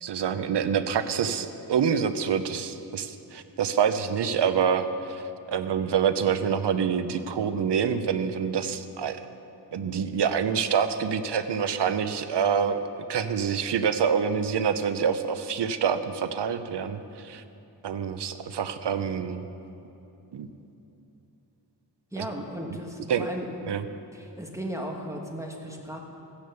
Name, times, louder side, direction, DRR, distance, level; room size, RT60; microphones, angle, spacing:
voice 1, 0.0-5.2 5.5-9.2 9.7-12.8 13.1-17.4 17.8-19.5 20.3-20.5 22.2-22.3 23.1-23.2 23.7-23.8, right 7 dB, 75° right, 10 dB, 0.8 m, -26 dB
voice 2, 22.1-23.5 24.1-26.0, equal, 5° right, 0 dB, 1.1 m, -36 dB
14.0 x 9.9 x 6.8 m, 3.0 s
wide cardioid pair, 165°, 42 cm